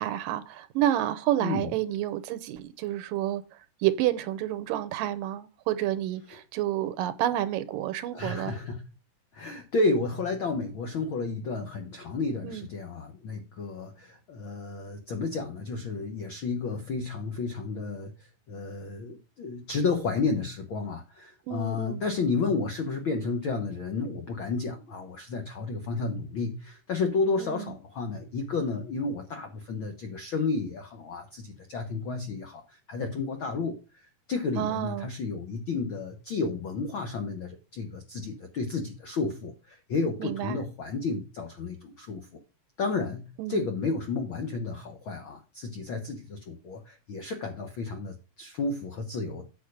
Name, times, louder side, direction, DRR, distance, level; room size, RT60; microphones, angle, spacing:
voice 1, 0.0-3.4 3.8-8.5 12.4-12.7 21.5-22.0 27.4-27.7 34.6-35.1 40.2-40.6 43.4-43.6, right 12 dB, 90° right, 2.5 m, -29 dB
voice 2, 1.4-1.7 8.1-8.8 9.3-42.3 42.8-49.5, left 4 dB, 75° left, 1.1 m, -32 dB
9.0 x 4.6 x 6.5 m
omnidirectional pair, 3.9 m